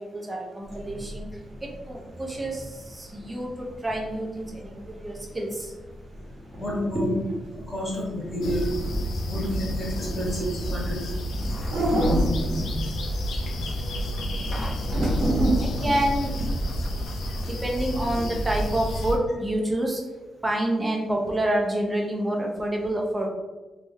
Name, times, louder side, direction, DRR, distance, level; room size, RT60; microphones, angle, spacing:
voice 1, 0.1-1.3 1.6-2.6 3.0-3.5 3.8-5.5 6.6-7.1 8.3-8.6 10.1-10.2 15.6-16.3 17.4-20.0 20.4-23.3, right 1 dB, 15° right, -1 dB, 0.7 m, -28 dB
sound 1, 0.6-17.0, right 1 dB, 65° right, 1.3 m, -31 dB
voice 2, 6.6-7.1 7.6-8.6 9.2-11.0, equal, 20° left, -5 dB, 1.3 m, -31 dB
sound 2, 8.4-19.2, equal, 70° left, 0.6 m, -30 dB
sound 3, 11.5-11.9 13.1-15.3 15.7-17.7, equal, 40° left, 1.0 m, -46 dB
3.4 x 3.3 x 3.2 m, 1.2 s
wide cardioid pair, 180°, 0 cm